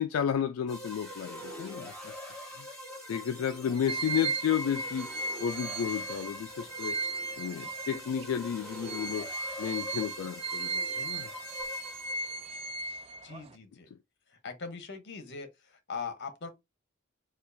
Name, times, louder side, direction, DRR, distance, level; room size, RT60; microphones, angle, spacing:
voice 1, 0.0-2.1 2.5-2.7 3.1-5.1 5.4-7.0 7.4-9.3 9.6-11.3, left 8 dB, 85° left, 0.3 m, -32 dB
sound 1, 0.7-12.4, left 1 dB, 5° left, 2.1 m, -44 dB
sound 2, 3.9-8.3 8.7-13.6, right 3 dB, 30° right, 0.3 m, -36 dB
voice 2, 13.2-13.9 14.4-15.5 15.9-16.5, left 5 dB, 60° left, 0.9 m, -40 dB
4.3 x 2.4 x 2.6 m
head